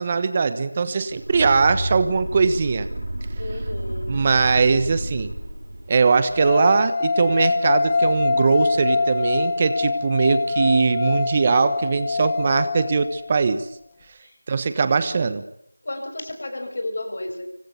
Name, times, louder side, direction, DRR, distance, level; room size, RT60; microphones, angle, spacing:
voice 1, 0.0-2.9 4.1-5.3 5.9-13.7 14.5-15.4, right 5 dB, 20° right, 12 dB, 1.2 m, -21 dB
sound 1, 1.1-6.0, right 1 dB, 55° right, 7.2 m, -30 dB
voice 2, 3.4-4.1 14.2-14.3 15.8-17.4, left 1 dB, 40° left, 6 dB, 6.3 m, -32 dB
sound 2, 6.3-13.4, left 3 dB, 15° left, 1.4 m, -24 dB
26.0 x 25.0 x 7.1 m, 0.72 s
figure-of-eight pair, 175°, 0 cm